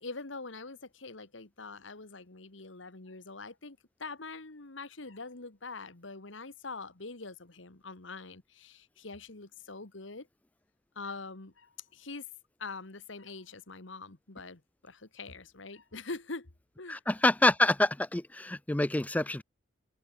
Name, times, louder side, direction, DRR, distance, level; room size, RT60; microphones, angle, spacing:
voice 1, 0.0-10.3 11.0-12.3 12.6-16.5 16.8-17.0, left 3 dB, 75° left, 1.8 m, -44 dB
voice 2, 16.9-19.4, left 2 dB, 10° left, 0.4 m, -26 dB
head